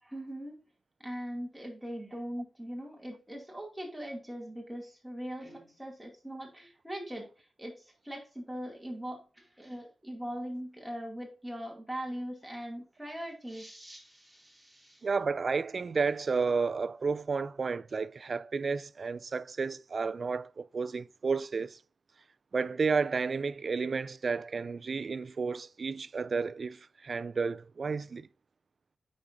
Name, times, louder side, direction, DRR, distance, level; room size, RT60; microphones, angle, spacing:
voice 1, 0.0-0.6 1.0-15.1, equal, 5° right, 2.4 m, -41 dB
voice 2, 15.0-21.8 22.5-28.3, right 4 dB, 45° right, 0.3 m, -32 dB
8.7 x 6.2 x 2.6 m
wide cardioid pair, 130°, 0 cm